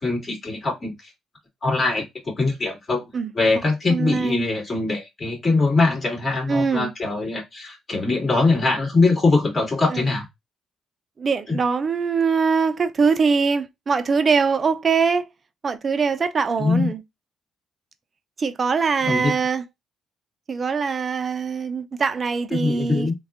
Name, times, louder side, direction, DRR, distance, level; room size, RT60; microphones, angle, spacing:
voice 1, 0.0-0.9 1.6-2.0 2.4-3.0 3.3-10.2 11.5-11.6 16.6-16.9 19.1-19.3 22.6-23.1, left 3 dB, 35° left, 2.3 m, -22 dB
voice 2, 3.9-4.5 6.5-6.9 9.9-10.1 11.2-15.3 15.6-17.0 18.4-19.6 20.5-23.1, right 5 dB, 40° right, 0.6 m, -22 dB
3.5 x 2.3 x 3.5 m
cardioid pair, 90°, 0 cm